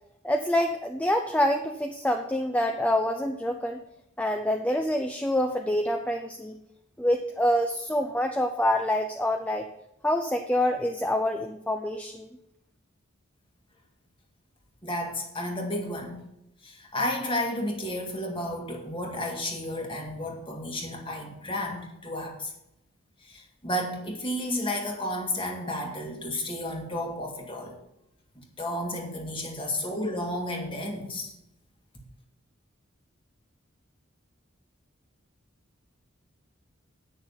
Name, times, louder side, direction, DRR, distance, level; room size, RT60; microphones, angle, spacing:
voice 1, 0.2-3.8 4.2-6.6 7.0-9.7 10.0-12.3, left 1 dB, 5° left, 4 dB, 0.5 m, -26 dB
voice 2, 14.8-16.2 16.6-22.5 23.2-27.7 28.4-31.3, left 1 dB, 25° left, 1 dB, 1.9 m, -32 dB
9.7 x 6.5 x 7.1 m, 0.84 s
head